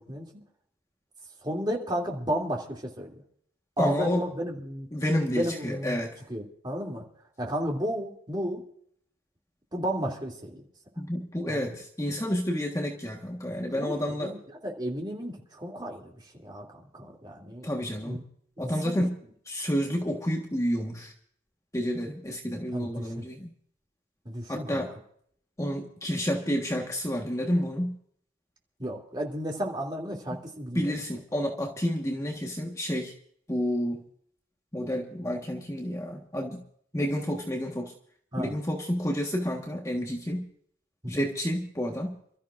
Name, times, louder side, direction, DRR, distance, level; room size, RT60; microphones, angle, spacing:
voice 1, 1.4-3.2 3.8-4.9 5.3-6.0 6.3-7.0 7.4-8.6 9.7-10.6 11.5-11.8 13.7-17.7 18.0-18.2 18.6-19.0 22.7-23.2 24.2-24.9 28.8-30.9 38.3-38.5 41.0-41.1, equal, 25° right, 0 dB, 2.8 m, -33 dB
voice 2, 3.8-4.3 4.9-6.2 11.0-14.3 17.6-18.2 18.6-19.1 19.5-21.1 21.7-23.5 24.5-24.9 25.6-28.0 30.7-33.1 33.5-34.0 34.7-36.6 36.9-37.9 38.4-40.5 41.1-42.1, equal, 15° left, 1 dB, 1.4 m, -30 dB
28.5 x 13.5 x 2.5 m, 0.64 s
head